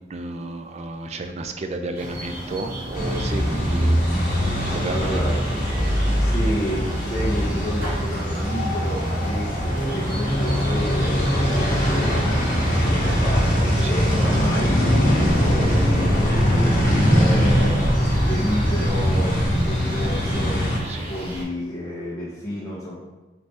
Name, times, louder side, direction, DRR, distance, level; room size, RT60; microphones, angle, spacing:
voice 1, 0.0-4.0 4.7-5.2 13.8-13.9 20.9-21.1, right 2 dB, 40° right, 7 dB, 0.4 m, -32 dB
sound 1, 1.9-21.4, equal, 55° right, 1.3 m, -34 dB
sound 2, 2.9-20.8, equal, 50° left, 1.1 m, -21 dB
voice 2, 4.9-5.4 6.2-13.6 13.9-22.9, equal, 20° left, -7 dB, 0.8 m, -31 dB
sound 3, 9.6-15.4, left 1 dB, 5° right, 0.9 m, -31 dB
4.2 x 3.2 x 3.2 m, 1.1 s
head